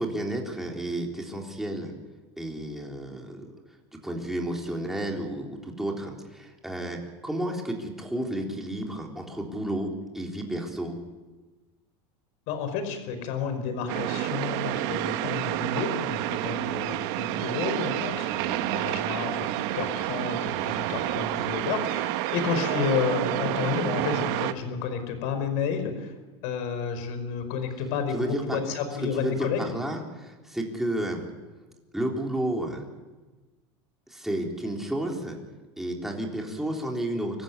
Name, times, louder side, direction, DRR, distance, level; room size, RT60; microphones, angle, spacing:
voice 1, 0.0-1.9 2.4-3.5 4.0-11.0 28.1-28.6 29.1-31.3 31.9-32.8 34.1-35.4 35.8-37.4, right 1 dB, ahead, 0 dB, 3.8 m, -31 dB
voice 2, 12.5-26.1 26.4-29.7, left 6 dB, 65° left, 8 dB, 5.2 m, -31 dB
sound 1, 13.9-24.5, right 14 dB, 65° right, 1.3 m, -29 dB
25.5 x 14.5 x 9.8 m, 1.2 s
supercardioid pair, 130°, 14 cm